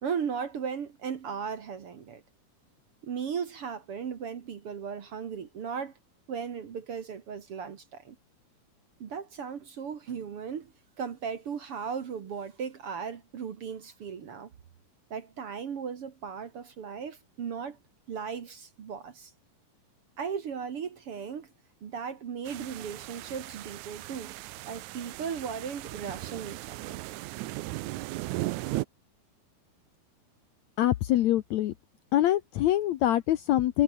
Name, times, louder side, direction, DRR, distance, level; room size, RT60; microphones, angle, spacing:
voice 1, 0.0-2.2 3.0-5.9 6.3-8.2 9.0-10.7 11.0-14.5 15.1-17.8 18.1-19.3 20.2-21.5 21.8-24.4 24.7-27.0, right 6 dB, 50° right, 2.1 m, -36 dB
sound 1, 22.5-28.8, right 18 dB, 75° right, 1.8 m, -37 dB
voice 2, 30.8-31.7 32.1-33.8, left 13 dB, 70° left, 1.8 m, -24 dB
omnidirectional pair, 4.0 m